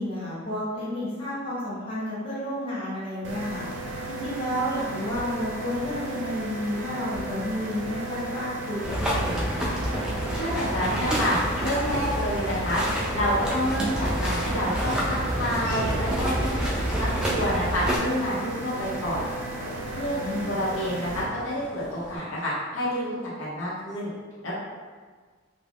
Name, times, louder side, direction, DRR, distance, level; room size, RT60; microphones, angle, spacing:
voice 1, 0.0-3.7 4.1-9.7 20.0-20.5, left 1 dB, 30° left, -10 dB, 0.8 m, -31 dB
sound 1, 3.2-21.2, right 2 dB, 80° right, 0.5 m, -35 dB
sound 2, 8.8-18.0, equal, 5° right, 0.3 m, -28 dB
voice 2, 10.3-11.3 11.6-12.8 13.1-16.6 16.9-19.3 19.9-24.1 24.4-24.5, equal, 80° left, -7 dB, 0.8 m, -28 dB
Laughter / Walk footsteps, 14.7-22.2, right 1 dB, 25° right, 0.8 m, -43 dB
2.3 x 2.1 x 3.3 m, 1.5 s
head